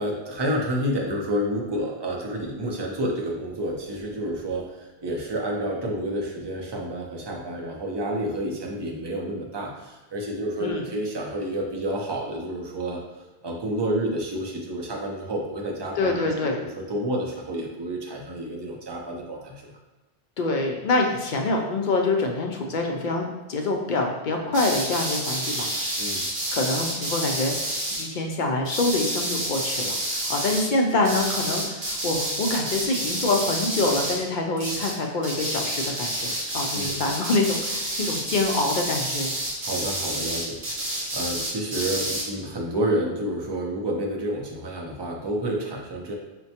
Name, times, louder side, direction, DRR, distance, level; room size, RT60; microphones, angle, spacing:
voice 1, 0.0-13.0 13.4-16.3 16.6-19.7 26.0-26.2 36.7-37.0 39.6-46.1, right 1 dB, 30° right, -1 dB, 0.5 m, -29 dB
voice 2, 16.0-16.6 20.4-25.7 26.5-30.0 30.3-39.3, left 2 dB, 60° left, 2 dB, 0.6 m, -25 dB
sound 1, 24.5-28.1 28.6-30.7 31.0-34.3 34.6-35.0 35.2-42.3, right 1 dB, 70° right, 1.2 m, -29 dB
5.8 x 2.2 x 2.8 m, 1.1 s
omnidirectional pair, 1.0 m